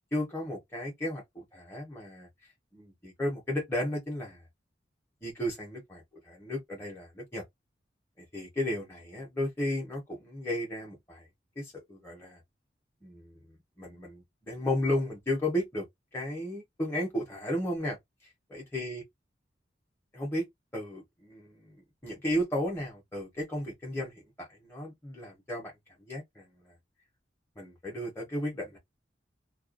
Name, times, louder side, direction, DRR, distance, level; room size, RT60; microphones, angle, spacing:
voice 1, 0.1-2.3 2.7-4.4 5.2-7.4 8.2-11.3 11.6-12.4 13.0-15.9 16.1-18.0 18.5-19.0 20.1-20.5 20.7-25.7 26.1-26.7 27.6-28.8, left 1 dB, 15° left, 0.8 m, -34 dB
2.4 x 2.2 x 2.4 m
head